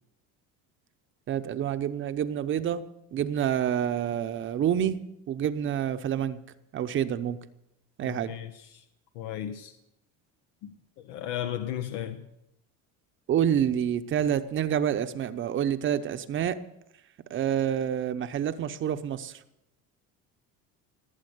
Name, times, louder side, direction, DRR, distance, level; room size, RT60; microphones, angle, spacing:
voice 1, 1.3-2.8 3.1-5.0 5.3-6.4 6.7-7.4 8.0-8.3 13.3-16.6 17.3-19.4, right 9 dB, 40° right, 0.8 m, -28 dB
voice 2, 8.0-8.8 9.1-9.7 10.6-10.7 11.0-12.3, left 11 dB, 80° left, 1.0 m, -35 dB
19.0 x 8.2 x 7.9 m
cardioid pair, 140°, 32 cm